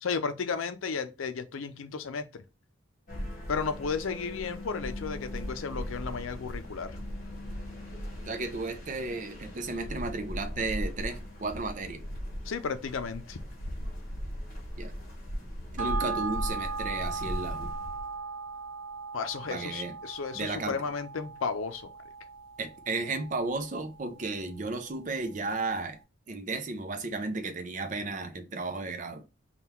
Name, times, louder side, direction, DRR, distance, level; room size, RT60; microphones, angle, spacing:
voice 1, 0.0-2.4 3.5-7.0 12.4-13.4 19.1-21.9, left 5 dB, 80° left, 0.5 m, -33 dB
sound 1, 3.1-18.2, equal, 40° left, 1.2 m, -38 dB
voice 2, 8.3-12.0 14.8-14.9 15.7-17.7 19.5-19.9 20.3-20.8 22.6-26.0 26.3-29.2, right 3 dB, 40° right, 0.5 m, -34 dB
sound 2, 15.8-24.5 24.9-25.0, right 4 dB, 90° right, 0.8 m, -38 dB
3.7 x 2.3 x 4.3 m
head